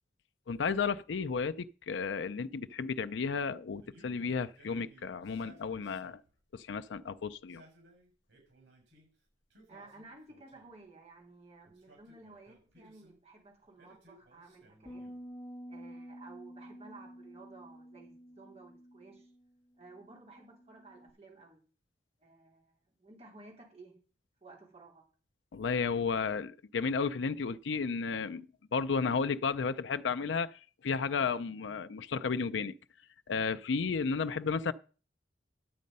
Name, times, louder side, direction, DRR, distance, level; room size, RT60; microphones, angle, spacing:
voice 1, 0.5-6.2 6.5-7.6 25.5-28.5 28.7-32.7 33.3-34.7, left 5 dB, 85° left, 0.5 m, -33 dB
Male speech man speaking, 3.8-6.4 7.3-9.1 9.5-10.8 11.7-13.2 13.8-15.3, right 1 dB, 90° right, 7.1 m, -60 dB
voice 2, 9.7-15.0 15.7-19.3 19.8-21.6 22.2-23.9 24.4-25.0, right 3 dB, 35° right, 4.1 m, -54 dB
sound 1, 14.9-21.1, equal, 20° left, 1.9 m, -50 dB
10.5 x 8.4 x 5.4 m
head